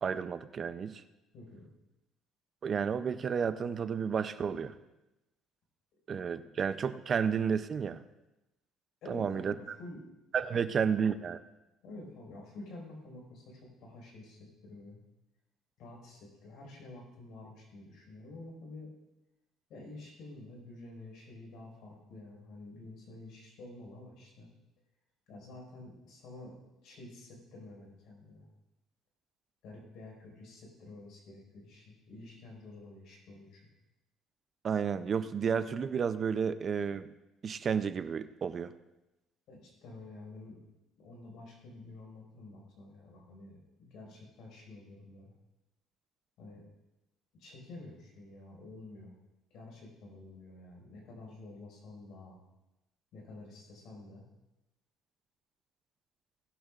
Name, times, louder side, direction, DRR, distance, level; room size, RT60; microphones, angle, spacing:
voice 1, 0.0-1.0 2.6-4.8 6.1-8.0 9.1-9.5 10.3-11.4 34.6-37.1 37.4-38.7, right 6 dB, 30° right, 12 dB, 0.5 m, -31 dB
voice 2, 1.3-1.7 9.0-10.0 11.8-15.0 15.8-18.9 19.7-24.5 25.3-26.5 26.8-28.5 29.6-33.6 39.5-40.6 41.0-45.3 46.4-46.7 47.4-49.1 49.5-52.4 53.1-54.2, left 2 dB, 60° left, 0 dB, 5.0 m, -49 dB
19.0 x 12.0 x 2.5 m, 0.96 s
cardioid pair, 160°, 0 cm